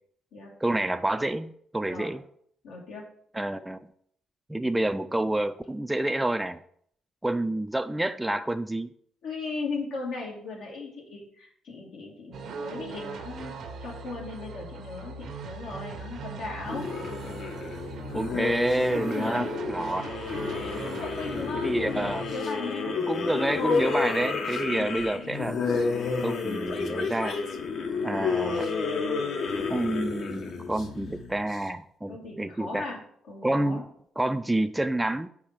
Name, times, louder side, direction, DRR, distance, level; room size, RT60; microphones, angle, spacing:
voice 1, 0.6-2.2 3.3-3.9 4.5-6.6 7.2-8.9 18.1-20.2 21.6-22.2 23.0-25.6 26.2-27.4 28.0-28.7 29.7-32.9 33.4-33.8 34.2-35.3, right 1 dB, 10° right, 9 dB, 0.3 m, -28 dB
voice 2, 2.6-3.0 9.2-13.5 13.8-16.9 18.9-19.6 20.0-20.1 20.6-23.0 24.6-25.0 32.1-33.0 33.3-33.8, left 3 dB, 90° left, -4 dB, 1.7 m, -37 dB
sound 1, 12.3-22.4, right 4 dB, 70° right, 0.9 m, -40 dB
sound 2, 16.7-31.6, left 4 dB, 65° left, 0.9 m, -30 dB
4.8 x 4.3 x 5.7 m, 0.65 s
cardioid pair, 90°, 0 cm